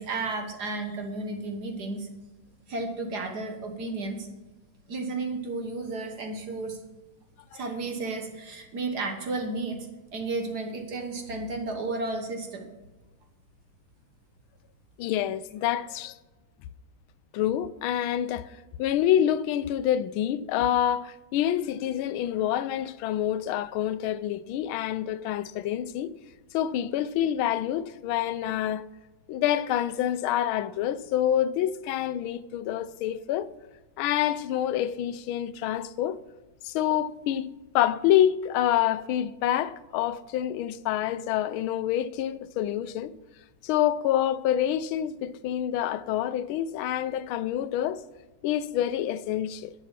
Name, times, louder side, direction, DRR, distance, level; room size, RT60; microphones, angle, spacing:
voice 1, 0.0-2.1 2.7-4.3 4.9-6.8 7.5-9.9 10.1-12.7, right 3 dB, 55° right, 1.7 m, -33 dB
voice 2, 15.0-16.2 17.3-18.5 18.8-26.1 26.5-28.9 29.3-33.5 34.0-36.2 36.6-37.5 37.7-43.1 43.6-48.0 48.4-49.7, left 11 dB, 80° left, 1.4 m, -27 dB
11.0 x 7.3 x 5.8 m
omnidirectional pair, 2.3 m